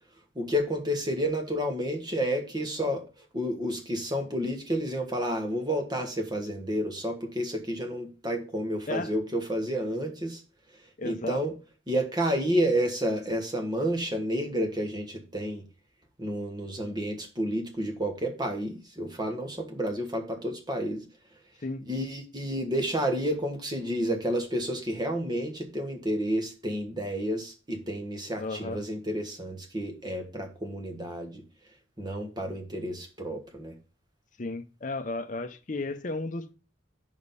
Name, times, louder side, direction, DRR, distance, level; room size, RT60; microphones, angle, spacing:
voice 1, 0.3-3.0 3.3-10.4 11.0-11.5 11.9-15.6 16.2-21.0 21.9-31.4 32.0-33.7, equal, 20° right, 1.4 m, -30 dB
voice 2, 11.0-11.4 21.6-21.8 28.4-28.8 34.4-36.5, left 2 dB, 40° left, 0.7 m, -34 dB
5.3 x 5.0 x 5.4 m
head